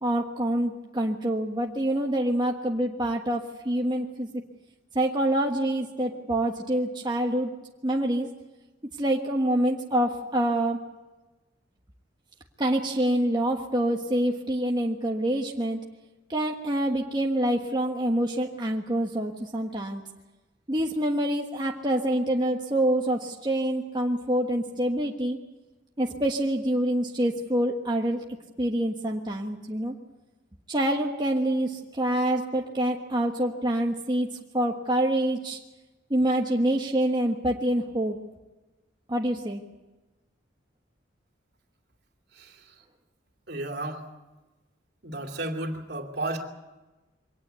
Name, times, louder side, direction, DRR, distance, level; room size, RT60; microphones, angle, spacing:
voice 1, 0.0-4.4 4.9-7.5 7.8-8.3 9.0-10.8 12.6-15.8 16.3-20.0 20.7-25.4 26.0-28.2 28.6-29.9 30.7-35.6 36.1-38.2 39.1-39.6, right 1 dB, 25° right, 0 dB, 1.4 m, -26 dB
voice 2, 43.5-44.0 45.0-46.5, right 2 dB, 60° right, 4 dB, 2.8 m, -33 dB
24.0 x 18.5 x 8.3 m, 1.1 s
head